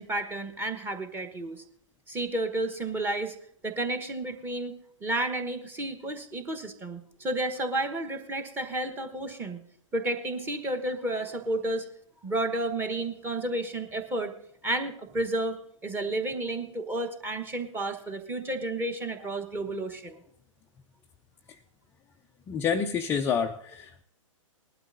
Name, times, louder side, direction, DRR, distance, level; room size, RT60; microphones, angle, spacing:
voice 1, 0.0-1.6 2.1-3.3 3.6-4.8 5.0-9.6 9.9-11.8 12.2-14.3 14.6-15.6 15.8-20.2, right 1 dB, 10° right, 7 dB, 1.2 m, -31 dB
voice 2, 22.5-24.0, left 6 dB, 15° left, 4 dB, 0.4 m, -28 dB
20.0 x 12.0 x 2.6 m, 0.70 s
figure-of-eight pair, 125°, 17 cm